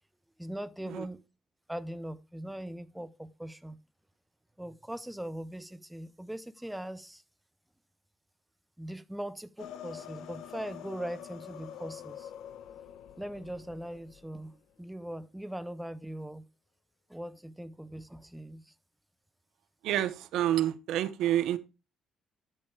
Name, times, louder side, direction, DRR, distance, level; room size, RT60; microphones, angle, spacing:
voice 1, 0.4-1.2 1.7-3.8 4.6-7.2 8.8-12.3 13.2-16.4 17.1-18.7, right 1 dB, 5° right, 0.5 m, -40 dB
sound 1, 9.6-14.4, left 10 dB, 80° left, 1.2 m, -46 dB
voice 2, 19.8-21.6, right 12 dB, 75° right, 1.0 m, -28 dB
11.5 x 8.7 x 3.3 m
cardioid pair, 140°, 0 cm